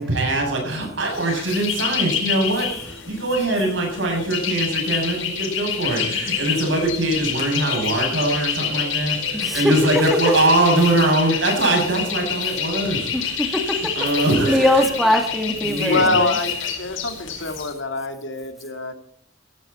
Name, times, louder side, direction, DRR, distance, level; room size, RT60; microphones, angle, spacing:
voice 1, 0.0-13.1 13.6-14.8 15.6-16.2, right 1 dB, 70° right, 1 dB, 7.6 m, -22 dB
sound 1, 1.1-17.7, left 7 dB, 90° left, 4.9 m, -28 dB
voice 2, 9.3-9.7 13.1-13.5 14.3-16.3, left 1 dB, ahead, 4 dB, 2.1 m, -21 dB
voice 3, 15.9-18.9, left 2 dB, 70° left, 7 dB, 2.2 m, -24 dB
16.0 x 16.0 x 4.3 m, 0.67 s
head